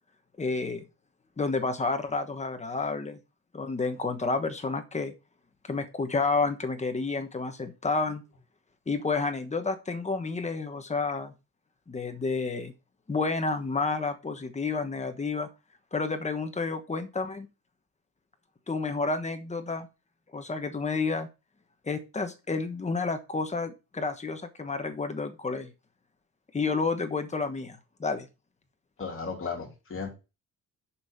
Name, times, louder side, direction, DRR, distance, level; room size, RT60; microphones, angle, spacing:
voice 1, 0.4-0.8 1.4-3.2 3.5-5.1 5.6-8.2 8.9-11.3 11.9-12.7 13.1-15.5 15.9-17.5 18.7-19.9 20.3-21.3 21.8-25.7 26.5-28.3, left 4 dB, 20° left, 7 dB, 1.2 m, -30 dB
voice 2, 29.0-30.1, left 5 dB, 40° left, 0 dB, 3.2 m, -35 dB
7.0 x 5.6 x 5.7 m, 0.29 s
cardioid pair, 145°, 34 cm